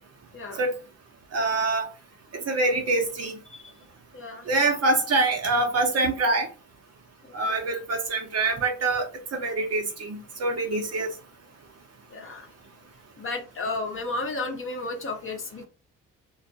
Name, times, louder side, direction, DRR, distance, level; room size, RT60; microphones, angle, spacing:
voice 1, 0.3-0.6 3.5-3.7 4.1-4.5 7.5-7.7 12.1-12.5 13.2-15.6, left 2 dB, 35° left, 0.8 m, -33 dB
voice 2, 1.3-1.9 2.5-3.3 4.5-6.5 7.3-9.0 9.3-11.1, right 2 dB, 45° right, 0.9 m, -25 dB
2.4 x 2.1 x 2.6 m
supercardioid pair, 60°, 35 cm